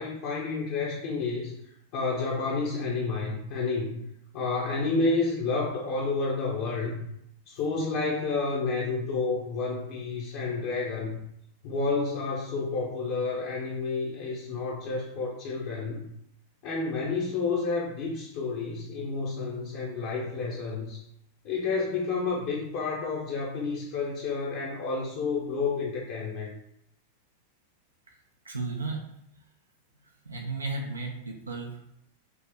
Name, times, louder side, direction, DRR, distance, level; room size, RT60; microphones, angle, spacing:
voice 1, 0.0-1.5 1.9-4.0 4.3-7.0 7.5-11.2 11.6-16.1 16.6-21.0 21.4-26.5, left 4 dB, 50° left, -4 dB, 0.7 m, -30 dB
voice 2, 28.4-29.0 30.3-31.8, right 3 dB, 80° right, 0 dB, 0.5 m, -34 dB
3.0 x 2.8 x 3.4 m, 0.78 s
figure-of-eight pair, 90°, 0 cm